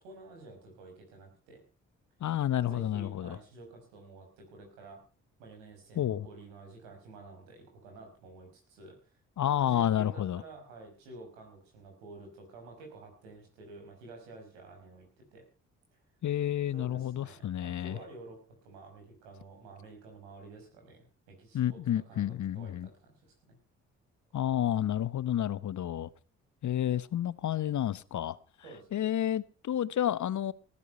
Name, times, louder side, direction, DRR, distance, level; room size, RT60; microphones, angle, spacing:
voice 1, 0.0-1.6 2.6-5.0 5.4-9.2 9.4-15.1 15.3-15.4 15.9-16.0 16.7-21.8 22.1-23.3 28.6-29.1, right 3 dB, 85° right, 5.3 m, -50 dB
voice 2, 2.2-3.4 6.0-6.3 9.4-10.4 16.2-18.0 21.5-22.9 24.3-26.1 26.6-28.4 28.9-30.5, left 11 dB, 50° left, 0.9 m, -30 dB
18.5 x 11.0 x 5.5 m
hypercardioid pair, 40°, 37 cm